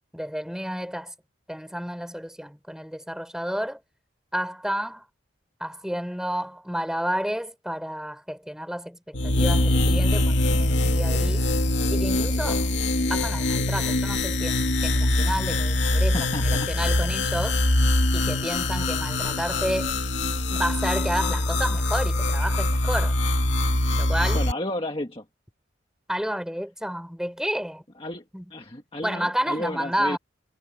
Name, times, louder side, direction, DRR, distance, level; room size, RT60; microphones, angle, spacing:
voice 1, 0.1-1.1 1.5-3.8 4.3-5.0 5.6-11.5 11.9-12.7 13.1-17.6 18.1-19.9 20.5-23.2 24.0-24.4 26.1-27.8 28.3-28.5 29.0-30.2, equal, 5° right, 6.3 m, -31 dB
sound 1, 9.1-24.5, left 1 dB, 65° left, 2.5 m, -23 dB
voice 2, 16.1-16.7 17.0-17.3 24.3-25.2 28.0-28.2 28.5-30.2, left 1 dB, 25° left, 1.9 m, -32 dB
head